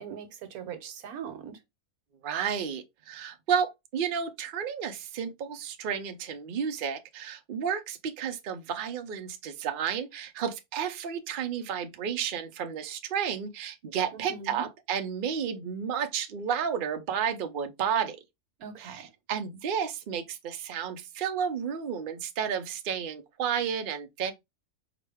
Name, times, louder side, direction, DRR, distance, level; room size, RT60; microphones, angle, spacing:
voice 1, 0.0-1.6 14.1-14.6 18.6-19.1 24.2-24.3, right 7 dB, 75° right, 1.2 m, -41 dB
voice 2, 2.2-18.2 18.8-19.0 19.3-24.3, right 7 dB, 60° right, 0.5 m, -32 dB
4.8 x 2.2 x 3.4 m
omnidirectional pair, 1.6 m